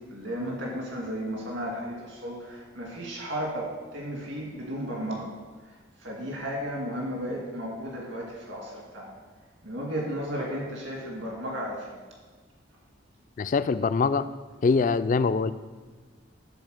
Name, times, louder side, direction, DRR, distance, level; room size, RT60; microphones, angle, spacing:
voice 1, 0.1-5.3 5.6-9.2 9.6-12.0, equal, 70° right, -2 dB, 2.2 m, -34 dB
voice 2, 13.4-14.3 14.6-15.5, left 4 dB, 40° left, 13 dB, 0.3 m, -23 dB
12.0 x 4.1 x 6.5 m, 1.4 s
head